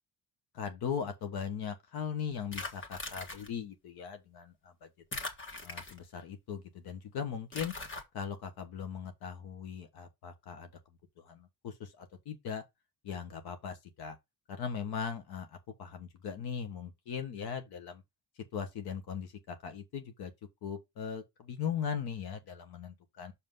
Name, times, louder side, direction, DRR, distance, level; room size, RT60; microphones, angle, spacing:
voice 1, 0.5-4.9 5.6-7.7 8.1-10.7 11.2-12.6 13.1-14.2 14.5-18.0 18.5-20.3 20.6-23.3, left 7 dB, 80° left, 1.4 m, -39 dB
sound 1, 2.5-3.5 5.1-6.2 7.5-8.0, left 2 dB, 30° left, 1.6 m, -40 dB
6.4 x 5.6 x 3.9 m
cardioid pair, 135°, 37 cm